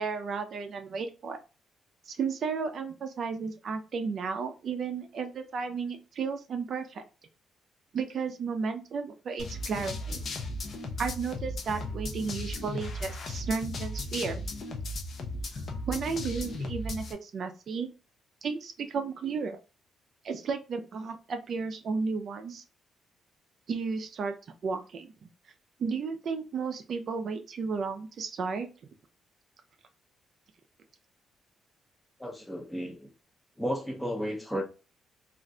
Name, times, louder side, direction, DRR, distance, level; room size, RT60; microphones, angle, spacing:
voice 1, 0.0-1.4 2.1-7.0 7.9-10.2 11.0-14.4 15.9-17.9 18.4-19.6 20.2-22.6 23.7-24.3 24.6-25.1 25.8-28.7, right 5 dB, 50° right, 0.5 m, -33 dB
sound 1, 9.4-17.1, left 2 dB, 45° left, 0.5 m, -36 dB
voice 2, 32.2-33.1 33.6-34.6, equal, 5° left, 0.6 m, -33 dB
2.5 x 2.1 x 3.7 m
cardioid pair, 150°, 0 cm